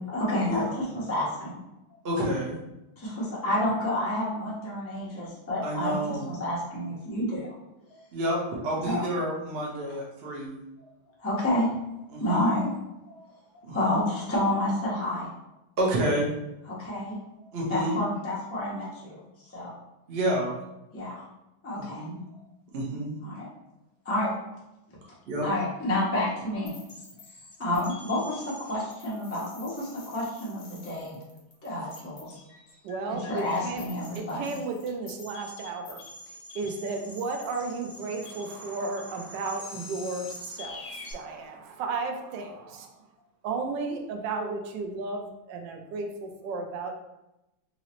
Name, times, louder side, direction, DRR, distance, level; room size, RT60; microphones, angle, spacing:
voice 1, 0.1-1.6 3.0-7.5 8.8-9.1 11.2-11.7 12.2-12.7 13.1-13.2 13.7-15.3 16.7-17.2 17.7-19.2 19.5-19.7 20.9-21.2 21.6-22.0 23.2-23.5 24.0-24.3 25.4-26.7 27.6-31.2 31.6-32.4 33.3-34.5, left 1 dB, 15° left, -7 dB, 0.4 m, -29 dB
voice 2, 2.0-2.6 5.6-6.3 8.1-8.4 8.6-10.6 12.1-12.6 13.7-14.1 15.8-16.3 17.5-18.0 20.1-20.6 21.7-22.2 22.7-23.1 25.3-25.5, right 1 dB, 55° right, -3 dB, 0.7 m, -29 dB
sound 1, 26.7-41.1, left 2 dB, 55° left, 1.0 m, -46 dB
voice 3, 32.8-33.8 34.1-36.0 36.3-42.9 43.4-47.0, right 3 dB, 70° right, 4 dB, 1.1 m, -34 dB
3.8 x 3.0 x 2.9 m, 0.93 s
omnidirectional pair, 2.2 m